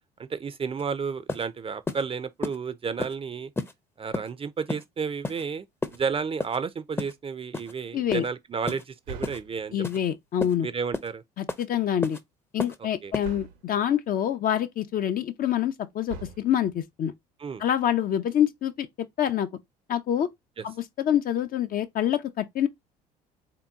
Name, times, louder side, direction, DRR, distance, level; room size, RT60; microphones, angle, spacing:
voice 1, 0.2-3.5 4.0-5.6 5.9-9.8 10.6-11.2 13.0-13.1 17.4-17.6 20.6-20.7, right 5 dB, 30° right, 0.6 m, -32 dB
sound 1, 0.8-0.9 1.3-1.4 1.9-2.0 2.4-2.6 3.0-3.1 3.6-3.7 4.1-4.3 4.7-4.8 5.2-5.4 5.8-6.0 6.4-6.6 7.0-7.1 7.5-7.7 8.1-8.3 8.7-8.8 9.2-9.4 9.8-10.0 10.4-10.5 10.9-11.1 11.5-11.6 12.0-12.2 12.6-12.8 13.1-13.3, left 3 dB, 10° left, 0.6 m, -31 dB
sound 2, 5.9-6.5 9.1-10.0 13.2-13.9 16.1-16.9, right 4 dB, 75° right, 0.9 m, -43 dB
voice 2, 7.9-8.2 9.7-10.7 11.4-12.2 12.5-17.1 17.6-19.5 19.9-20.3 20.6-22.7, left 10 dB, 45° left, 0.6 m, -26 dB
3.6 x 2.9 x 3.6 m
hypercardioid pair, 65°, 20 cm